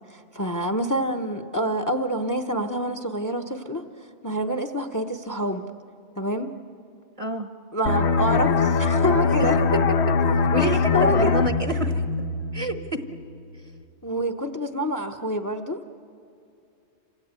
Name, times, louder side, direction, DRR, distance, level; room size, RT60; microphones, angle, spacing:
voice 1, 0.1-3.8 4.2-5.6 6.2-6.5 7.7-9.6 10.6-11.4 14.0-15.8, equal, 20° left, 7 dB, 0.9 m, -27 dB
voice 2, 7.2-7.5 10.5-12.0 12.5-13.0, right 2 dB, 30° right, 8 dB, 1.1 m, -28 dB
sound 1, 7.9-13.2 13.6-13.8, left 4 dB, 70° left, 1.3 m, -22 dB
28.0 x 26.0 x 8.2 m, 2.6 s
omnidirectional pair, 1.2 m